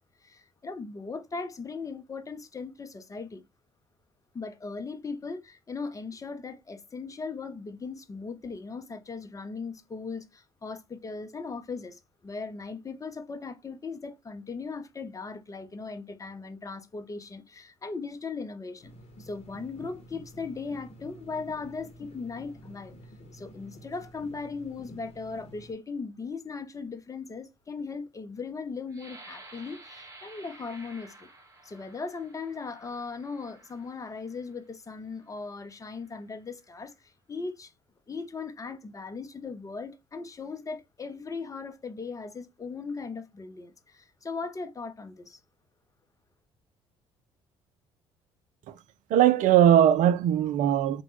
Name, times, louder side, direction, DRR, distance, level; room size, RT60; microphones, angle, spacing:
voice 1, 0.0-3.4 4.3-18.9 19.2-22.9 23.3-31.3 31.6-37.7 38.1-45.4, left 4 dB, 20° left, 0.6 m, -38 dB
sound 1, 18.8-25.7, equal, 45° left, 0.9 m, -49 dB
sound 2, 28.9-34.6 35.2-35.4 35.8-36.3, right 2 dB, 20° right, 1.1 m, -52 dB
voice 2, 49.1-51.0, right 10 dB, 55° right, 0.4 m, -20 dB
2.9 x 2.2 x 3.1 m
hypercardioid pair, 55°, 15 cm